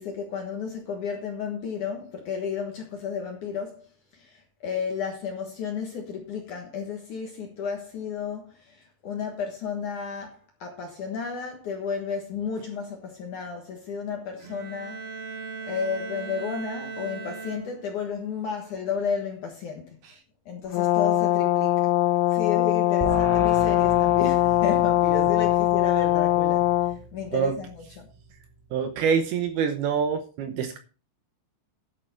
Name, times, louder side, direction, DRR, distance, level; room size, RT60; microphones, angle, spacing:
voice 1, 0.0-3.9 4.1-15.1 15.6-20.0 20.5-21.9 22.3-28.1, left 6 dB, 60° left, 2.2 m, -33 dB
Bowed string instrument, 14.4-18.1, right 4 dB, 55° right, 5.0 m, -38 dB
Brass instrument, 20.7-27.0, left 14 dB, 85° left, 2.4 m, -21 dB
sound 1, 23.0-28.5, right 1 dB, 15° right, 1.6 m, -37 dB
voice 2, 28.7-30.8, right 7 dB, 75° right, 2.5 m, -25 dB
11.0 x 8.5 x 4.3 m
omnidirectional pair, 5.2 m